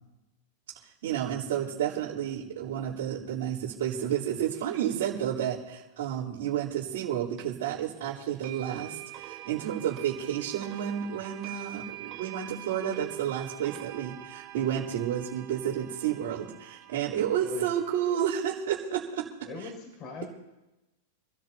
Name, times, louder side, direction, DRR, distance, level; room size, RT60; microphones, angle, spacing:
voice 1, 1.0-19.3, right 10 dB, 65° right, -10 dB, 3.7 m, -31 dB
sound 1, 7.4-7.5 8.4-18.5, right 13 dB, 45° right, 1.4 m, -44 dB
voice 2, 19.5-20.3, left 3 dB, 40° left, 1 dB, 6.5 m, -40 dB
27.5 x 14.0 x 2.9 m, 0.99 s
hypercardioid pair, 105°, 0 cm